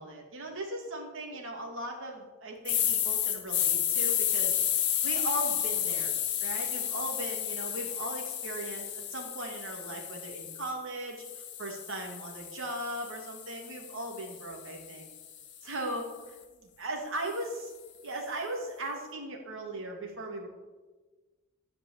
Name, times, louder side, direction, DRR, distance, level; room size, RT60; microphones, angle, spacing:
voice 1, 0.0-4.6 5.0-6.1 6.4-15.1 15.6-16.1 16.6-17.7 18.0-20.5, right 1 dB, 65° right, 1 dB, 2.5 m, -38 dB
sound 1, 2.6-10.7 11.2-15.4, left 10 dB, 60° left, 1.4 m, -32 dB
13.5 x 5.3 x 8.5 m, 1.3 s
head